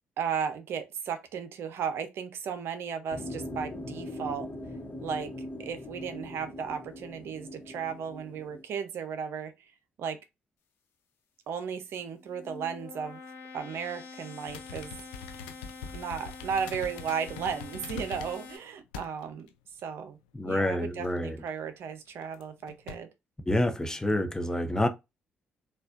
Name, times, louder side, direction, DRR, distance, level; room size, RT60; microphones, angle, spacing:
voice 1, 0.2-4.7 5.0-5.3 5.6-9.5 10.0-10.2 11.5-13.2 13.5-14.9 15.9-19.5 19.8-20.2 20.4-23.1, right 7 dB, 65° right, 0.6 m, -35 dB
sound 1, 3.1-8.6, left 1 dB, 45° left, 1.1 m, -41 dB
sound 2, 12.1-18.6, left 4 dB, 65° left, 0.9 m, -46 dB
sound 3, 14.5-18.5 18.9-19.5 19.8-19.9 21.0-21.5 22.2-22.4 22.7-23.0, left 7 dB, 90° left, 0.4 m, -43 dB
voice 2, 20.3-21.4 23.5-24.9, left 1 dB, 15° left, 0.7 m, -28 dB
4.2 x 2.3 x 2.5 m
hypercardioid pair, 50°, 4 cm